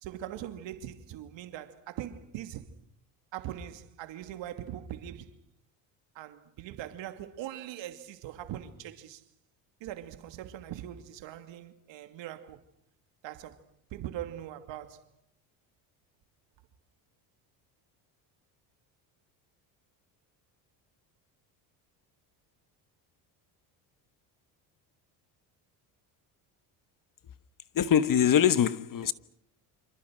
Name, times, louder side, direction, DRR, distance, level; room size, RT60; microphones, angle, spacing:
voice 1, 0.0-2.7 3.3-5.3 6.1-9.2 9.8-12.6 13.2-13.6 13.9-15.1 29.0-29.1, right 11 dB, 70° right, 2.7 m, -41 dB
voice 2, 27.7-29.1, left 9 dB, 45° left, 1.4 m, -23 dB
27.5 x 27.0 x 6.4 m
supercardioid pair, 90°, 47 cm